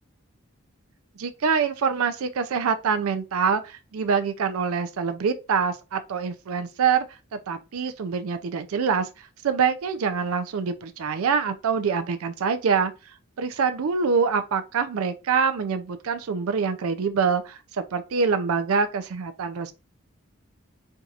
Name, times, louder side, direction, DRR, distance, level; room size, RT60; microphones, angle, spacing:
voice 1, 1.2-7.1 7.3-9.1 9.4-12.9 13.4-19.7, right 6 dB, 85° right, 0.4 m, -25 dB
4.5 x 2.7 x 2.4 m
head